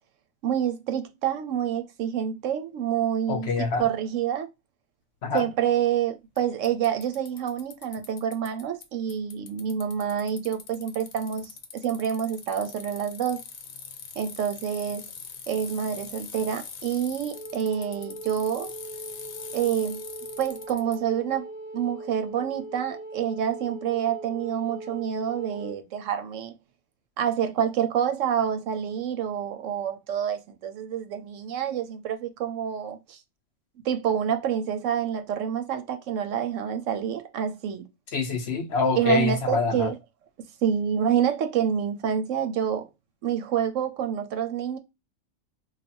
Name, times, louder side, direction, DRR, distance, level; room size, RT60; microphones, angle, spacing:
voice 1, 0.4-3.5 3.8-4.5 5.3-11.5 11.8-13.4 14.2-15.1 15.5-18.7 19.5-20.0 20.4-21.4 21.7-26.5 27.2-33.2 33.8-37.8 38.9-40.0 40.6-42.9 43.2-44.8, right 9 dB, 70° right, 0.9 m, -27 dB
voice 2, 3.3-3.9 5.2-5.4 38.1-39.9, left 4 dB, 60° left, 0.8 m, -25 dB
Bicycle, 5.4-5.5 6.4-6.5 6.6-8.8 9.1-21.0, left 7 dB, 80° left, 1.1 m, -42 dB
Wind instrument woodwind instrument, 17.3-25.8, right 1 dB, 10° right, 0.4 m, -40 dB
3.2 x 2.3 x 4.2 m
omnidirectional pair, 1.4 m